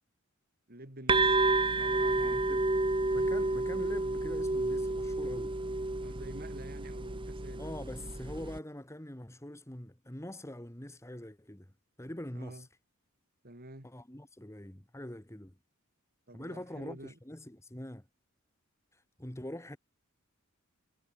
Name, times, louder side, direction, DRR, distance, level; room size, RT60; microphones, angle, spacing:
voice 1, 0.7-1.4 1.7-2.4 6.0-7.7 12.3-12.7 13.4-13.9 16.3-17.2, right 1 dB, 45° right, 4.5 m, -48 dB
sound 1, 1.1-8.6, right 2 dB, 25° right, 1.2 m, -30 dB
voice 2, 2.1-2.7 3.1-5.6 7.6-11.7 12.0-12.7 13.8-15.6 16.3-18.1 18.9-19.8, left 1 dB, 15° left, 1.9 m, -44 dB
head